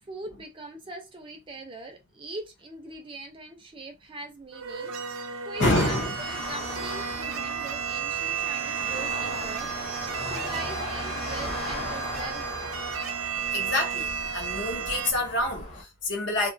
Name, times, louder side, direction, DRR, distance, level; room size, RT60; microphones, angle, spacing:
voice 1, 0.0-12.7, right 2 dB, 25° right, 0.4 m, -42 dB
sound 1, 4.5-15.1, right 7 dB, 90° right, 0.4 m, -33 dB
sound 2, 5.5-15.8, left 1 dB, 30° left, 0.8 m, -37 dB
voice 2, 5.6-6.2 13.5-16.5, left 2 dB, 60° left, 0.6 m, -27 dB
2.6 x 2.2 x 2.5 m
head